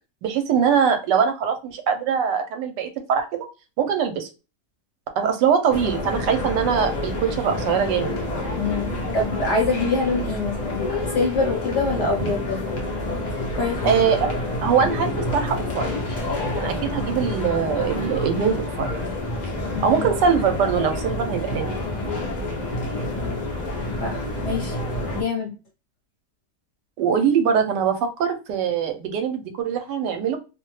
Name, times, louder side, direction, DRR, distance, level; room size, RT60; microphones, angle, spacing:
voice 1, 0.2-3.5 3.8-4.3 5.2-8.2 12.2-12.3 13.8-14.3 14.6-15.9 16.6-18.9 19.8-21.8 27.0-30.4, right 7 dB, 80° right, 6 dB, 1.2 m, -22 dB
sound 1, 5.7-25.2, left 1 dB, 70° left, 0.4 m, -28 dB
voice 2, 8.6-8.9 9.1-12.8 13.5-14.0 19.8-20.1 24.0-24.8 25.1-25.5, left 3 dB, 50° left, -1 dB, 1.0 m, -25 dB
2.8 x 2.1 x 3.0 m, 0.31 s
omnidirectional pair, 1.8 m